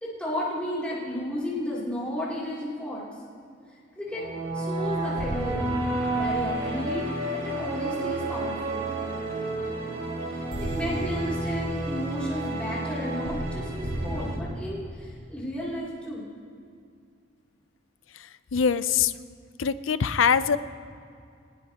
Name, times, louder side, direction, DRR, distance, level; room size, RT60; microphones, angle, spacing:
voice 1, 0.0-3.1 4.0-4.3 4.5-5.7 6.1-8.8 10.2-16.3, equal, 5° left, -9 dB, 3.0 m, -33 dB
sound 1, 4.1-14.4, right 2 dB, 80° right, 3.6 m, -30 dB
voice 2, 18.5-19.1 19.6-20.6, left 7 dB, 75° left, 13 dB, 0.5 m, -23 dB
21.0 x 20.5 x 2.9 m, 2.4 s
head